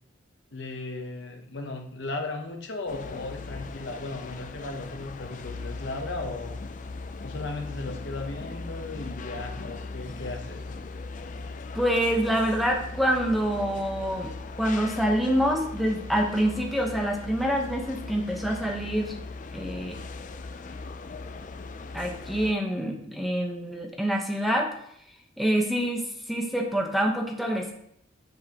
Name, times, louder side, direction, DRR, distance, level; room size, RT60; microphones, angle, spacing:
voice 1, 0.5-6.6 7.2-10.6, left 2 dB, 60° left, 4 dB, 0.9 m, -36 dB
sound 1, 2.9-22.5, left 3 dB, 40° left, 0.4 m, -39 dB
voice 2, 11.7-14.3 14.6-19.2 19.5-20.0 21.9-24.7 25.4-26.0 26.3-27.7, equal, ahead, 0 dB, 1.0 m, -26 dB
7.8 x 7.4 x 2.9 m, 0.70 s
head